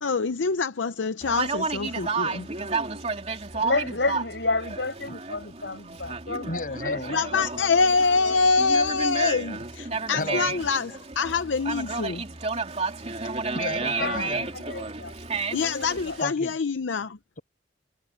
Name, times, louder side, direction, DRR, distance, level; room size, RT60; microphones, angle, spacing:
voice 1, 0.0-2.5 7.1-12.2 15.5-17.2, left 4 dB, 90° left, 0.7 m, -25 dB
Conversation, 1.2-16.2, right 4 dB, 35° right, 3.2 m, -32 dB
voice 2, 3.5-8.4 9.9-10.0 14.0-15.1 15.5-16.2, left 3 dB, 70° left, 7.5 m, -31 dB
voice 3, 6.4-7.2 10.1-10.5 13.5-14.5 16.2-16.6, left 2 dB, 45° left, 6.0 m, -33 dB
head